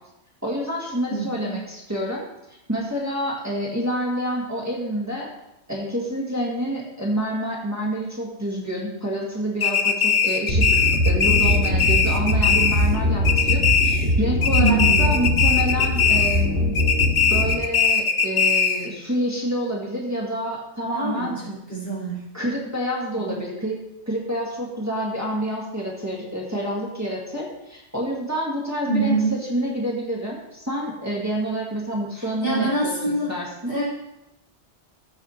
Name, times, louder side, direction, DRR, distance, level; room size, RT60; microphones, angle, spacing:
voice 1, 0.4-5.3 5.7-16.7 17.3-21.6 22.3-23.8 24.1-33.7, equal, 15° right, -4 dB, 1.8 m, -28 dB
voice 2, 1.1-1.5 14.5-15.1 20.9-22.3 23.2-23.4 28.9-29.3 32.2-33.3 33.7-33.9, right 3 dB, 70° left, -5 dB, 4.0 m, -25 dB
sound 1, 9.6-13.0 13.2-14.2 14.4-16.5 16.8-18.9, left 6 dB, 50° left, 0.8 m, -20 dB
sound 2, 10.5-17.5, left 1 dB, 80° right, 2.9 m, -22 dB
14.0 x 4.9 x 4.3 m, 0.90 s
omnidirectional pair, 1.2 m